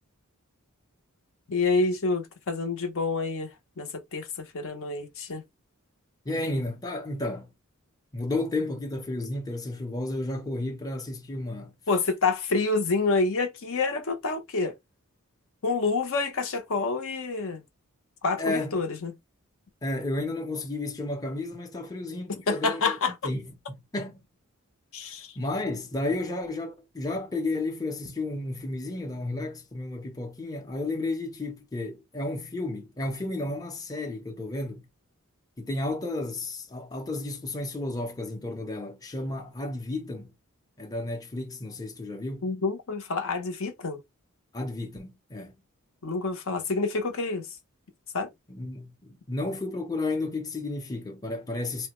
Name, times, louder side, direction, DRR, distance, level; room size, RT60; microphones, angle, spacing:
voice 1, 1.5-5.4 11.9-14.7 15.6-17.6 18.2-19.1 22.5-23.1 24.9-25.3 42.4-44.0 46.0-47.5 48.1-48.3, left 3 dB, 65° left, 0.7 m, -28 dB
voice 2, 6.2-7.5 8.1-11.7 18.4-18.8 19.8-23.0 23.2-24.2 25.0-34.9 35.6-40.3 40.8-42.5 44.5-45.5 48.5-51.9, left 2 dB, 15° left, 0.6 m, -32 dB
4.0 x 2.1 x 2.9 m
head